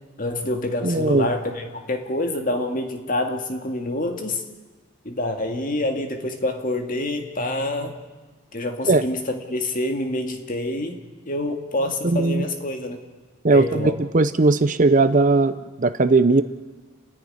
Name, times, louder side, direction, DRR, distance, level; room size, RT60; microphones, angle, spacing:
voice 1, 0.2-4.4 5.0-8.0 8.5-11.0 11.3-13.0 13.5-13.9, left 1 dB, 40° left, 4 dB, 2.1 m, -27 dB
voice 2, 0.8-1.3 8.9-9.0 12.0-12.5 13.4-16.4, right 3 dB, 40° right, 12 dB, 0.6 m, -18 dB
29.5 x 10.5 x 9.9 m, 1.3 s
head